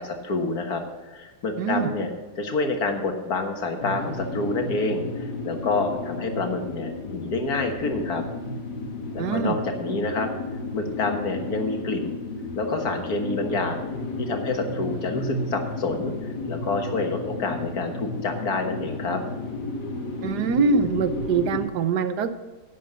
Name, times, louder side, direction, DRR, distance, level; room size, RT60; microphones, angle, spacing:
voice 1, 0.0-2.1 2.4-8.2 9.1-10.3 10.7-12.2 12.6-13.9 14.2-16.1 16.5-19.2, left 3 dB, 70° left, 4 dB, 2.0 m, -28 dB
voice 2, 1.6-1.9 9.2-9.5 20.2-22.3, right 5 dB, 80° right, 11 dB, 1.4 m, -24 dB
sound 1, 3.8-21.6, left 2 dB, 85° left, 2.0 m, -33 dB
11.0 x 8.6 x 5.5 m, 1.2 s
omnidirectional pair, 1.7 m